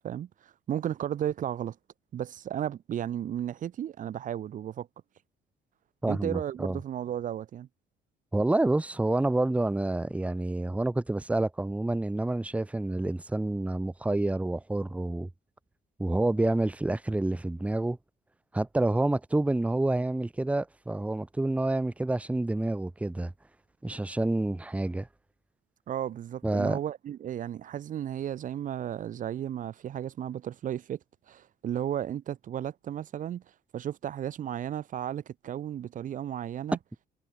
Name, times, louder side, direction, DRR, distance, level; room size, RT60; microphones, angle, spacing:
voice 1, 0.0-1.8 2.1-4.9 6.1-7.7 25.9-31.0 31.3-33.4 33.7-36.8, right 10 dB, 50° right, 1.0 m, -34 dB
voice 2, 6.0-6.8 8.3-15.3 16.0-18.0 18.5-23.3 23.8-25.1 26.4-26.8, right 2 dB, 10° right, 1.1 m, -28 dB
cardioid pair, 110°, 17 cm